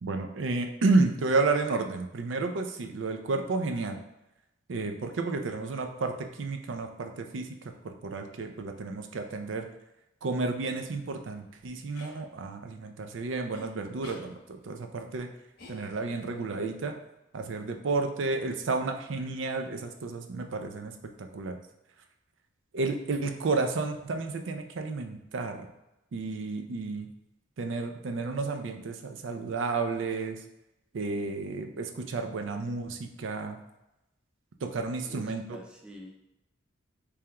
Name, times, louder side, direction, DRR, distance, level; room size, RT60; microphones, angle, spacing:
voice 1, 0.0-4.0 4.7-7.6 7.8-9.7 10.2-15.3 15.7-17.0 17.3-21.5 22.7-25.7 26.1-27.1 27.6-30.4 30.9-33.6 34.6-35.6, right 3 dB, 75° right, 5 dB, 0.4 m, -31 dB
sound 1, 11.9-12.2 13.5-13.7 14.0-14.3 15.6-16.2, left 2 dB, 50° left, 0.8 m, -47 dB
voice 2, 19.1-19.4 35.0-36.2, equal, 5° right, 0 dB, 0.4 m, -48 dB
3.4 x 2.9 x 3.4 m, 0.92 s
head